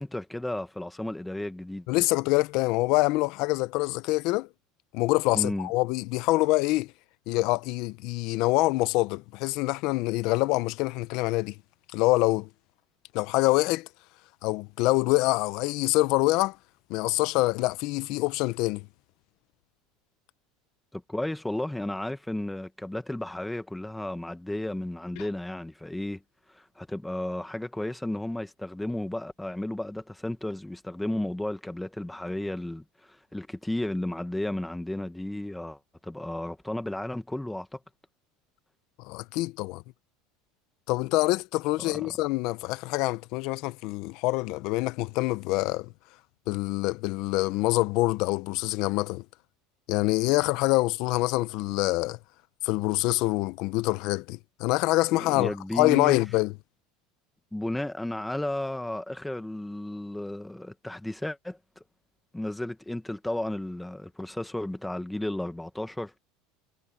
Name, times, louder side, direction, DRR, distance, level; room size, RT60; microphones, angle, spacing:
voice 1, 0.0-1.9 5.3-5.7 20.9-26.2 26.5-37.8 41.8-42.1 55.1-56.2 57.5-61.8 62.3-66.1, left 1 dB, 5° left, 1.1 m, -33 dB
voice 2, 1.9-4.5 4.9-6.9 7.3-11.5 11.9-12.5 13.1-13.9 14.4-16.6 16.9-18.9 39.0-39.8 40.9-45.9 46.5-49.2 49.9-52.2 52.6-56.5, left 20 dB, 50° left, 0.6 m, -25 dB
cardioid pair, 170°, 0 cm